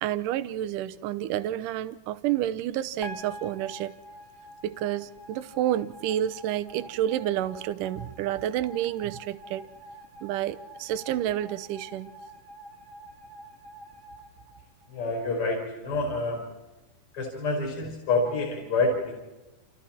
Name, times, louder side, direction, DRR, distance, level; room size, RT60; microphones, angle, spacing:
voice 1, 0.0-3.9 4.6-9.7 10.2-12.1, right 12 dB, 75° right, 12 dB, 2.3 m, -29 dB
sound 1, 3.0-15.3, equal, 10° right, 1.8 m, -46 dB
voice 2, 14.9-16.5 17.1-19.1, left 3 dB, 35° left, 1 dB, 5.7 m, -27 dB
30.0 x 28.0 x 4.4 m, 1.1 s
omnidirectional pair, 4.1 m